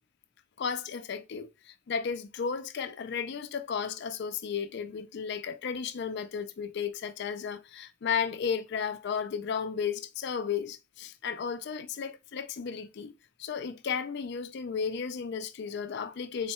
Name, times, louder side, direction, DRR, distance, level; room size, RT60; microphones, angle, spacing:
voice 1, 0.6-13.1 13.4-16.5, left 6 dB, 60° left, 0.4 m, -34 dB
3.9 x 2.2 x 4.1 m
head